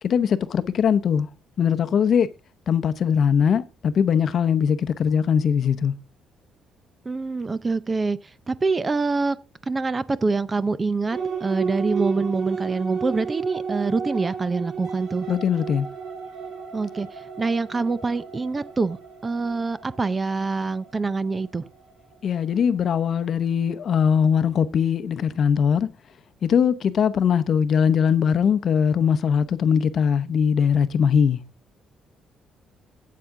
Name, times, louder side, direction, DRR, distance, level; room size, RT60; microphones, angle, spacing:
voice 1, 0.0-1.3 1.6-2.3 2.7-5.9 15.3-15.9 22.2-25.9 26.4-31.4, left 7 dB, 45° left, 0.8 m, -21 dB
voice 2, 7.1-9.4 9.7-15.3 16.7-19.0 19.2-21.7, right 3 dB, 20° right, 0.5 m, -25 dB
sound 1, 11.1-23.0, right 6 dB, 50° right, 2.4 m, -33 dB
12.5 x 8.5 x 3.7 m
cardioid pair, 155°, 0 cm